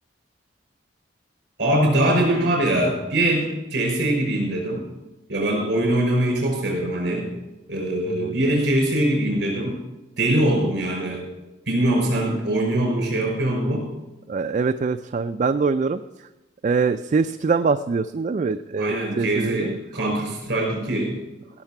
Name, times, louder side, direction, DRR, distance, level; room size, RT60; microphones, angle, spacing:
voice 1, 1.6-4.8 5.3-7.3 7.7-9.8 10.2-11.2 11.7-13.8 18.8-21.2, right 1 dB, 60° right, 0 dB, 5.7 m, -22 dB
voice 2, 14.3-16.0 16.6-19.8, right 4 dB, 40° right, 9 dB, 0.3 m, -23 dB
17.0 x 6.6 x 5.8 m, 1.0 s
head